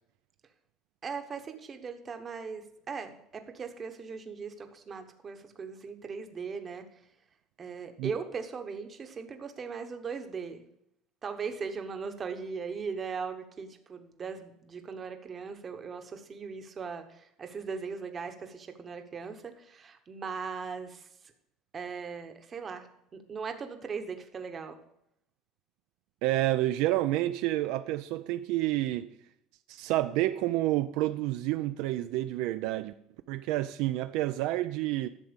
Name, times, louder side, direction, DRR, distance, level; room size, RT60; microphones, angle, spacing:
voice 1, 1.0-7.0 7.6-10.7 11.2-21.3 21.7-24.8, right 5 dB, 20° right, 1.0 m, -39 dB
voice 2, 26.2-29.1 29.7-32.9 33.3-35.1, right 15 dB, 60° right, 0.4 m, -29 dB
12.0 x 7.4 x 5.1 m
cardioid pair, 170°, 0 cm